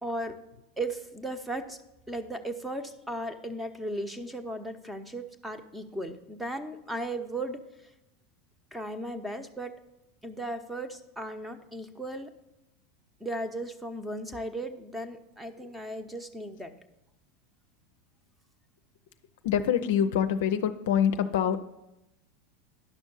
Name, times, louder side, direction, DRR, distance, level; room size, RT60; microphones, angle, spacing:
voice 1, 0.0-0.4 0.8-1.8 2.1-7.6 8.7-9.8 10.2-12.3 13.2-16.7, right 1 dB, 5° right, 8 dB, 0.9 m, -36 dB
voice 2, 19.4-21.6, left 8 dB, 65° left, 9 dB, 0.5 m, -25 dB
10.5 x 6.1 x 5.4 m, 0.91 s
figure-of-eight pair, 85°, 0 cm